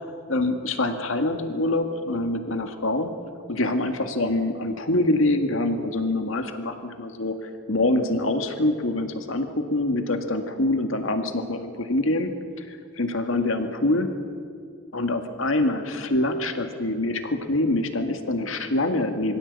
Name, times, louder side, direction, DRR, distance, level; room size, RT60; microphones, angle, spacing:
voice 1, 0.3-3.1 3.5-12.3 12.6-14.1 14.9-19.4, left 2 dB, 80° left, 6 dB, 2.0 m, -25 dB
24.0 x 16.0 x 8.4 m, 2.3 s
head